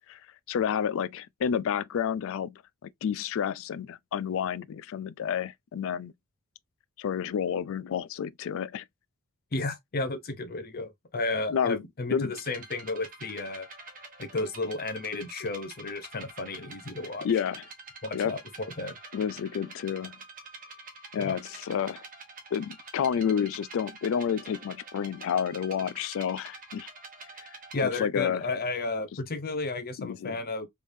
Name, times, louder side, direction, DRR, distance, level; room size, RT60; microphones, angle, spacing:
voice 1, 0.5-6.1 7.0-8.8 11.5-11.8 12.1-12.3 17.2-17.6 18.1-18.3 19.1-20.2 21.1-22.0 22.5-26.9 27.8-28.4 30.0-30.4, left 8 dB, 60° left, 0.3 m, -30 dB
voice 2, 9.5-13.7 14.2-17.3 18.0-18.9 21.2-21.4 27.7-30.7, left 3 dB, 45° left, 0.7 m, -33 dB
sound 1, 12.3-27.8, right 3 dB, 40° right, 1.0 m, -47 dB
3.4 x 3.2 x 2.6 m
head